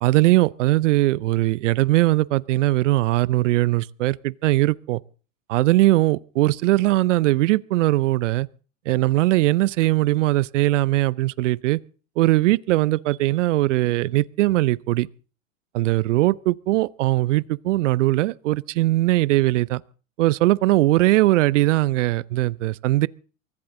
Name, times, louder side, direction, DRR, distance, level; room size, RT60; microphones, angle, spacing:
voice 1, 0.0-5.0 5.5-8.5 8.9-11.8 12.2-15.1 15.7-19.8 20.2-23.1, right 17 dB, 65° right, 0.7 m, -20 dB
23.5 x 14.5 x 3.8 m
hypercardioid pair, 115°, 39 cm